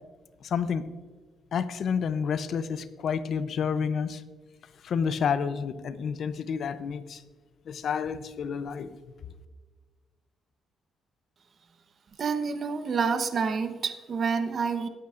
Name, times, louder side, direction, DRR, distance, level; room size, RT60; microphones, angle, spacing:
voice 1, 0.4-0.8 1.5-4.2 4.8-7.2 7.7-8.9, left 6 dB, 60° left, 13 dB, 0.6 m, -29 dB
voice 2, 12.2-14.9, right 5 dB, 50° right, 9 dB, 1.0 m, -28 dB
20.5 x 8.6 x 2.6 m, 1.4 s
cardioid pair, 90°, 0 cm